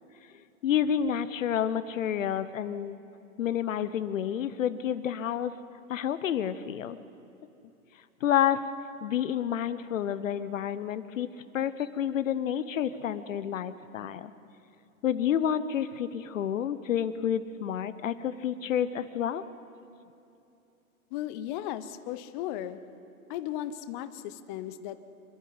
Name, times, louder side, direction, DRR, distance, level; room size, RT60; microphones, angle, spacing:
voice 1, 0.6-3.0 3.4-5.5 5.9-7.0 8.2-8.6 9.0-11.3 11.5-14.3 15.0-19.4, left 9 dB, 60° left, 14 dB, 0.9 m, -29 dB
voice 2, 21.1-22.8 23.3-25.0, left 12 dB, 35° left, 12 dB, 0.9 m, -36 dB
27.0 x 11.5 x 9.6 m, 2.8 s
figure-of-eight pair, 115°, 44 cm